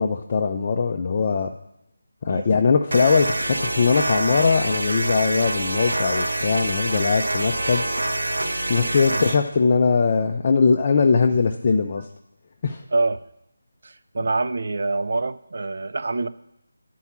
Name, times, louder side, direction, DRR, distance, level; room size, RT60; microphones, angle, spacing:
voice 1, 0.0-1.5 2.2-7.8 8.7-12.1 12.6-12.8, left 5 dB, 30° left, 3 dB, 0.4 m, -20 dB
sound 1, 2.9-9.4, right 1 dB, 80° right, 1.1 m, -26 dB
voice 2, 13.8-16.3, right 3 dB, 50° right, 12 dB, 0.5 m, -25 dB
9.7 x 4.6 x 7.2 m, 0.82 s
figure-of-eight pair, 170°, 0 cm